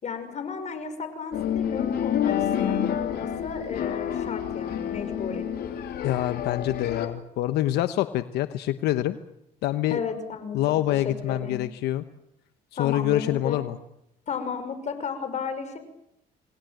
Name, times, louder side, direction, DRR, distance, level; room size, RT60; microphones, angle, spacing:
voice 1, 0.0-5.4 9.9-10.6 11.0-11.6 12.8-13.6 14.3-15.8, left 5 dB, 45° left, 9 dB, 5.8 m, -33 dB
sound 1, 1.3-7.1, left 9 dB, 70° left, 3.3 m, -28 dB
voice 2, 6.0-9.2 9.6-10.0 10.5-12.0 12.8-13.8, left 14 dB, 85° left, 11 dB, 1.1 m, -26 dB
29.0 x 20.0 x 9.1 m, 0.82 s
cardioid pair, 110°, 17 cm